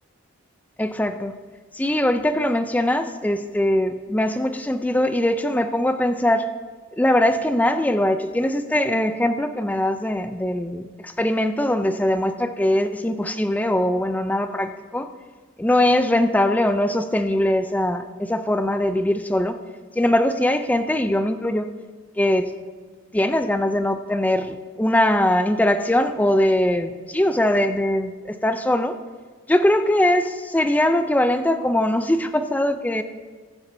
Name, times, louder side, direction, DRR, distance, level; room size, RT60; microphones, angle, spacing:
voice 1, 0.8-1.4 1.7-6.5 7.0-15.1 15.6-19.6 19.9-21.7 22.2-22.5 23.1-29.0 29.5-33.0, left 1 dB, 5° left, 9 dB, 0.3 m, -21 dB
20.5 x 7.1 x 2.6 m, 1.5 s
head